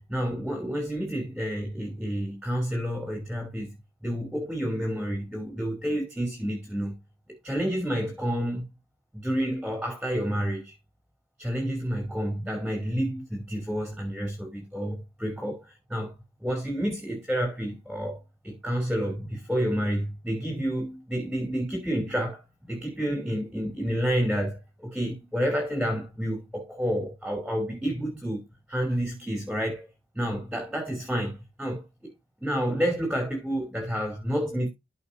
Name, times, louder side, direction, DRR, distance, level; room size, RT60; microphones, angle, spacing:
voice 1, 0.0-3.7 4.0-6.9 7.4-8.6 9.1-10.7 11.4-16.1 16.4-22.4 22.7-29.9 30.1-32.1 32.4-34.7, equal, 5° right, 3.1 m, -29 dB
14.0 x 5.8 x 2.7 m
head